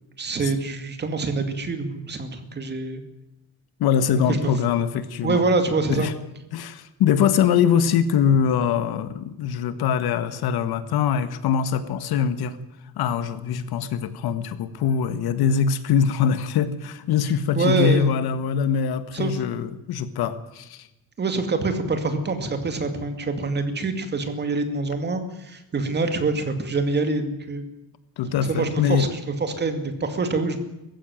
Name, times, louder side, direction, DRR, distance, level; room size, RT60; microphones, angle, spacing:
voice 1, 0.2-3.0 4.3-4.5 5.2-6.1 17.6-18.1 19.1-19.4 21.2-27.6 28.4-30.6, right 3 dB, 30° right, 7 dB, 2.4 m, -25 dB
voice 2, 3.8-5.4 5.9-6.1 6.5-12.6 13.0-20.9 28.2-29.0, left 7 dB, 90° left, 12 dB, 1.7 m, -23 dB
19.5 x 15.0 x 9.3 m, 0.95 s
cardioid pair, 175°, 37 cm